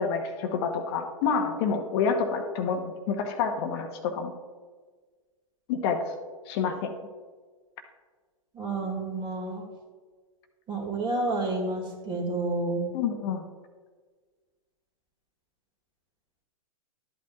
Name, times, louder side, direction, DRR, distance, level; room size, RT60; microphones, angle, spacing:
voice 1, 0.0-4.3 5.7-6.1 6.5-6.9 12.9-13.4, left 6 dB, 45° left, 5 dB, 0.9 m, -28 dB
voice 2, 8.5-9.7 10.7-12.9, right 2 dB, 25° right, 2 dB, 2.1 m, -30 dB
12.0 x 8.4 x 2.4 m, 1.5 s
hypercardioid pair, 115°, 18 cm